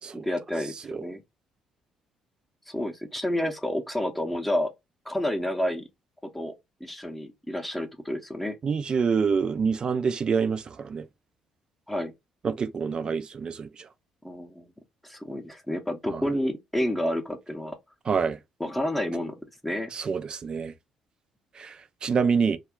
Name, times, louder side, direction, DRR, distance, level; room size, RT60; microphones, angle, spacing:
voice 1, 0.1-1.2 2.7-4.7 5.1-5.9 6.3-6.5 6.8-8.6 11.9-12.1 14.2-14.7 15.0-17.8 18.6-19.3 19.6-19.9, left 1 dB, 5° left, 0.7 m, -29 dB
voice 2, 8.6-11.0 12.4-13.7 16.1-16.2 18.1-18.4 19.9-20.7 21.6-21.8 22.0-22.6, right 5 dB, 45° right, 0.4 m, -26 dB
2.3 x 2.1 x 3.6 m
hypercardioid pair, 55°, 2 cm